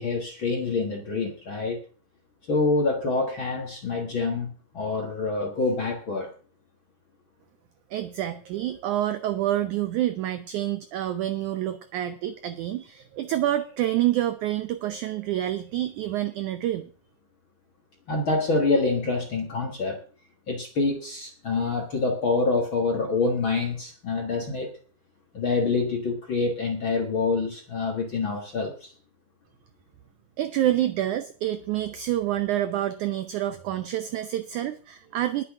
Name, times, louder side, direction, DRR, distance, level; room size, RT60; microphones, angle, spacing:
voice 1, 0.0-1.8 2.5-6.3 18.1-20.0 20.5-24.8 25.3-28.9, left 3 dB, 50° left, 2 dB, 1.6 m, -26 dB
voice 2, 7.9-16.9 30.4-35.4, right 13 dB, 85° right, 10 dB, 1.7 m, -27 dB
20.5 x 8.2 x 3.6 m, 0.40 s
omnidirectional pair, 4.4 m